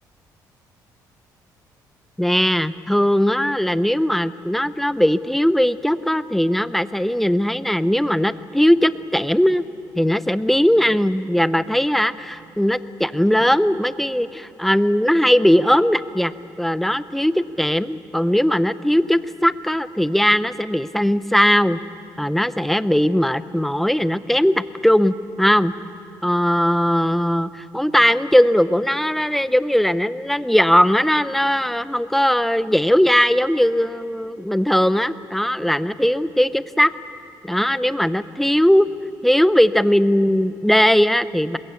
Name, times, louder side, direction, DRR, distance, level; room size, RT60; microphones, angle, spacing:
voice 1, 2.2-9.6 10.0-21.8 22.2-25.7 26.2-36.9 37.4-38.9 39.2-41.6, equal, 5° left, 14 dB, 0.6 m, -19 dB
21.5 x 21.5 x 8.3 m, 2.6 s
cardioid pair, 120°, 7 cm